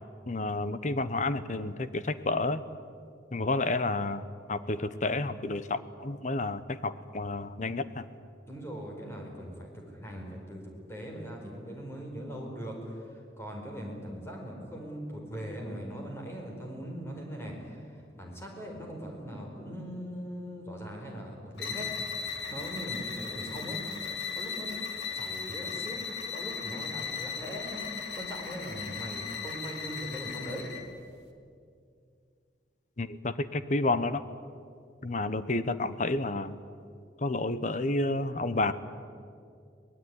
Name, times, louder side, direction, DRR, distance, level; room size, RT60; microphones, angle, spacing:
voice 1, 0.3-2.6 3.3-4.2 4.5-8.1 33.0-34.2 35.0-36.5 37.2-38.7, left 2 dB, 45° left, 13 dB, 1.0 m, -30 dB
voice 2, 8.5-10.6 10.9-23.9 24.3-24.7 25.1-26.0 26.3-30.6, equal, 15° left, 0 dB, 5.1 m, -40 dB
sound 1, 21.5-30.9, left 6 dB, 90° left, 2.5 m, -37 dB
23.5 x 19.5 x 9.9 m, 2.4 s
head